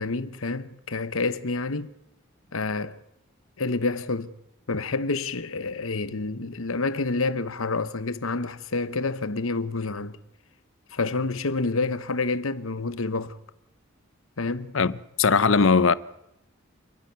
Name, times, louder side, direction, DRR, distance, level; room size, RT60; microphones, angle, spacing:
voice 1, 0.0-1.9 2.5-3.0 3.6-4.3 4.7-10.2 10.9-13.4 14.4-14.7, left 3 dB, 85° left, 1.1 m, -28 dB
voice 2, 15.2-15.9, left 5 dB, 70° left, 0.7 m, -19 dB
28.5 x 10.0 x 9.4 m
head